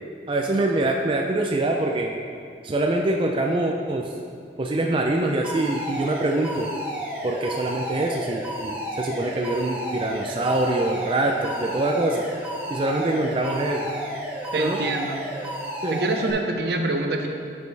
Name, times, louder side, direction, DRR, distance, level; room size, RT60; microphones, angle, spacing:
voice 1, 0.3-2.1 2.6-4.1 4.6-6.7 7.2-12.2 12.7-13.9 14.5-14.8 15.8-16.0, right 2 dB, 30° right, 1 dB, 0.4 m, -24 dB
Alarm, 5.4-16.3, equal, 10° right, 1.3 m, -32 dB
voice 2, 14.5-15.3 15.9-17.3, right 2 dB, 65° right, 4 dB, 0.7 m, -25 dB
10.5 x 5.2 x 3.3 m, 2.3 s
head